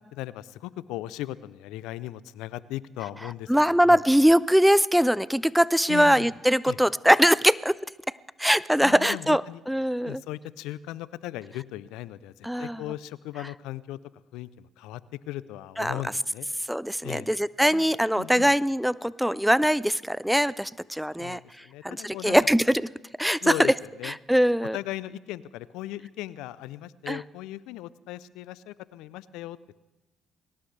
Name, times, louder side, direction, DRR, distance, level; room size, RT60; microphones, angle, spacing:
voice 1, 0.1-3.5 3.8-4.0 5.9-6.3 6.7-6.8 8.8-9.6 10.0-14.0 14.3-16.5 17.0-17.3 17.7-17.9 18.2-18.5 21.2-22.4 23.4-24.1 24.7-29.6, left 15 dB, 80° left, 18 dB, 0.5 m, -37 dB
voice 2, 3.5-7.8 8.4-9.4 9.7-10.2 12.4-12.8 15.8-16.0 16.7-22.9 23.2-23.7 24.0-24.8 27.1-27.2, equal, ahead, 20 dB, 0.4 m, -22 dB
22.0 x 18.0 x 3.3 m, 1.0 s
hypercardioid pair, 55°, 0 cm